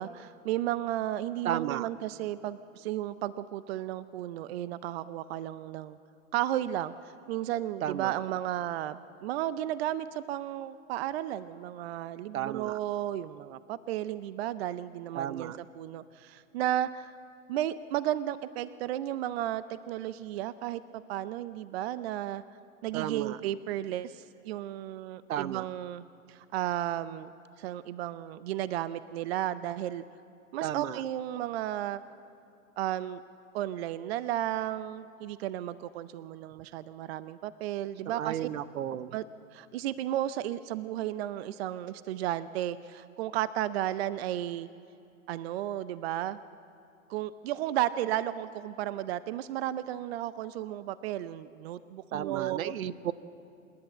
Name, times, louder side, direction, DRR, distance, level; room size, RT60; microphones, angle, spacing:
voice 1, 0.0-6.0 6.3-17.2 17.5-22.4 22.8-30.0 30.5-32.0 32.8-33.2 33.5-38.5 39.1-39.2 39.5-44.7 45.3-46.4 47.1-52.7, right 12 dB, 50° right, 16 dB, 0.5 m, -33 dB
voice 2, 1.4-1.9 7.8-8.1 12.3-12.8 15.1-15.6 22.9-23.4 25.3-25.7 30.6-31.0 38.1-39.2 52.1-53.1, right 11 dB, 75° right, 17 dB, 0.8 m, -33 dB
27.5 x 10.5 x 8.9 m, 2.6 s
hypercardioid pair, 130°, 42 cm